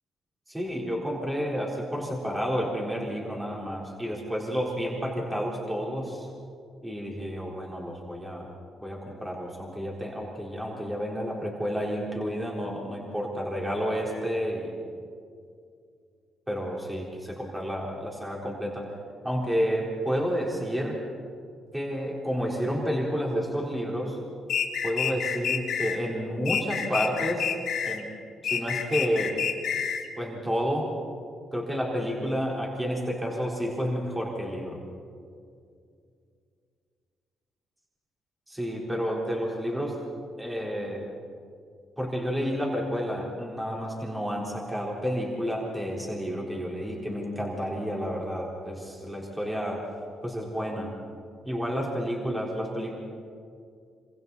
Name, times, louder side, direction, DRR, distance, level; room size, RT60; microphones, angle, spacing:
voice 1, 0.5-6.3 6.8-8.5 8.8-14.8 16.5-18.8 19.2-21.0 21.7-24.2 24.8-27.5 27.9-28.1 28.4-29.4 30.2-30.9 31.5-34.8 38.5-40.0 40.4-41.1 42.0-49.8 50.2-50.9 51.4-52.9, equal, 10° right, -3 dB, 3.9 m, -30 dB
sound 1, 24.5-26.0 26.5-28.0 28.4-30.1, left 8 dB, 70° left, 2.3 m, -28 dB
27.0 x 24.5 x 4.2 m, 2.3 s
cardioid pair, 90°, 0 cm